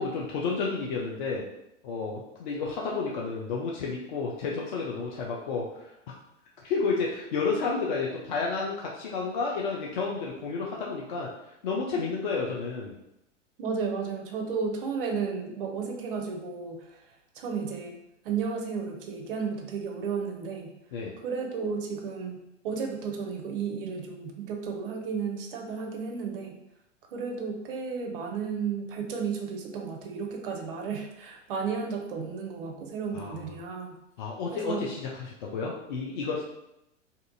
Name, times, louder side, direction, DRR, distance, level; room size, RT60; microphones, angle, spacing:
voice 1, 0.0-1.4 1.8-5.9 6.6-11.3 11.6-12.9 20.9-21.1 33.1-33.4 34.2-36.4, left 4 dB, 40° left, -2 dB, 0.4 m, -31 dB
voice 2, 13.6-20.7 21.2-26.6 27.1-34.0 34.5-34.8, right 5 dB, 45° right, 2 dB, 0.6 m, -33 dB
2.5 x 2.4 x 2.5 m, 0.84 s
figure-of-eight pair, 105°, 38 cm